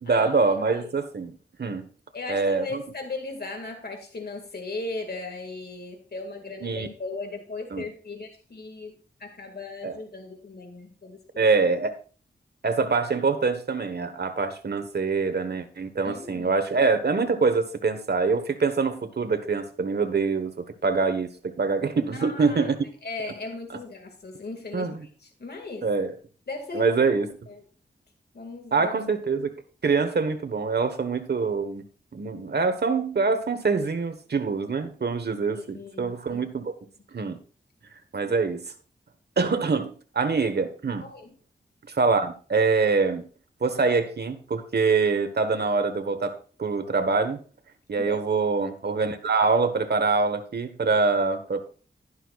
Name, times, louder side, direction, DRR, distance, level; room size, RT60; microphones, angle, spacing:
voice 1, 0.0-1.9 2.3-2.8 6.6-6.9 7.7-7.8 9.8-10.0 11.4-11.9 12.6-22.8 24.7-25.0 25.8-26.2 26.7-27.3 28.7-29.5 29.8-31.8 32.1-36.7 37.1-37.4 38.1-38.6 39.4-41.1 41.9-43.2 43.6-47.4 47.9-51.6, right 4 dB, 65° right, 8 dB, 1.4 m, -25 dB
voice 2, 2.1-11.5 16.0-16.5 22.1-22.7 23.0-24.9 25.4-25.9 26.5-26.9 27.5-27.6 28.3-28.9 35.4-36.4 38.3-38.4 41.0-41.3 48.0-48.2, left 3 dB, 60° left, 4 dB, 2.1 m, -37 dB
11.5 x 11.0 x 2.5 m, 0.39 s
cardioid pair, 55°, 19 cm